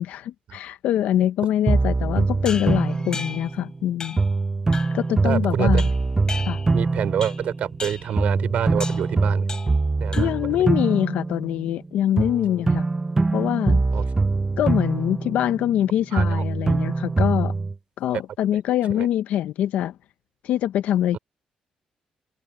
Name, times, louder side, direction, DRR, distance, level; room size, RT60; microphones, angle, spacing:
voice 1, 0.0-4.2 4.9-5.9 6.5-6.6 10.2-12.8 13.3-13.8 14.6-17.5 18.0-19.9 20.4-21.2, left 11 dB, 85° left, 0.6 m, -24 dB
sound 1, 1.7-3.8 4.2-7.9 8.2-11.8 12.2-15.9 16.2-17.8, right 3 dB, 20° right, 0.6 m, -23 dB
sound 2, 2.4-3.6 4.0-4.3 4.7-5.1 5.8-6.8 7.2-7.5 7.8-8.2 8.8-9.1 9.5-9.8 10.1-10.5, left 4 dB, 30° left, 4.4 m, -36 dB
voice 2, 5.2-5.8 6.7-9.5 10.0-10.6 13.9-14.0 16.1-16.4 18.9-19.1, right 9 dB, 65° right, 4.6 m, -27 dB
cardioid pair, 110°, 2 cm